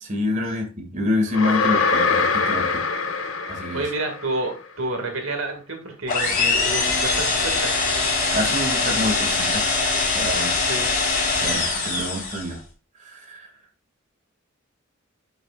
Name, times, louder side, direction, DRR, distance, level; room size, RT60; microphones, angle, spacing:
voice 1, 0.0-2.8 3.5-3.8 8.3-9.7 10.1-10.6 11.4-12.6 13.0-13.5, left 2 dB, 35° right, 2 dB, 2.2 m, -27 dB
sound 1, 1.3-4.4, left 4 dB, 70° left, 1.4 m, -23 dB
voice 2, 3.7-7.9 10.7-11.0, right 2 dB, 75° right, 4 dB, 2.1 m, -29 dB
sound 2, 6.1-12.6, left 3 dB, 40° left, 3.7 m, -22 dB
10.5 x 6.6 x 2.4 m, 0.32 s
head